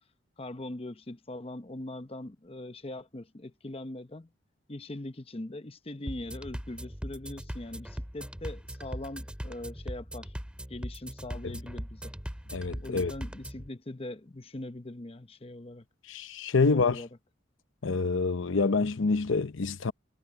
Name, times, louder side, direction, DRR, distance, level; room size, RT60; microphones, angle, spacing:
voice 1, 0.4-4.3 4.7-10.3 10.7-12.1 12.8-15.9 16.7-17.1, left 1 dB, 30° left, 0.9 m, -41 dB
sound 1, 6.1-13.7, equal, 5° right, 2.7 m, -40 dB
voice 2, 12.5-13.1 16.1-17.0 17.8-19.9, left 4 dB, 85° left, 0.8 m, -27 dB
head